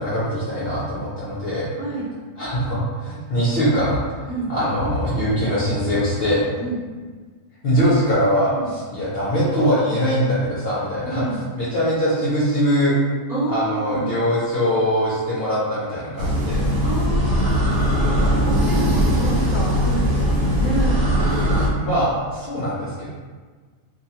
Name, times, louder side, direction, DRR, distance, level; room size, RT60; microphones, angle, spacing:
voice 1, 0.0-1.7 2.4-6.5 7.6-11.2 11.5-12.9 13.5-16.6 21.8-23.1, equal, 55° left, -10 dB, 0.7 m, -22 dB
voice 2, 1.8-2.1 4.3-4.5 6.6-6.8 8.5-8.7 11.0-11.5 13.3-14.1 16.8-17.7 18.6-21.0, right 1 dB, 35° right, -12 dB, 0.8 m, -28 dB
sound 1, 16.2-21.7, equal, 65° right, 0.9 m, -19 dB
2.6 x 2.3 x 2.8 m, 1.4 s
omnidirectional pair, 1.6 m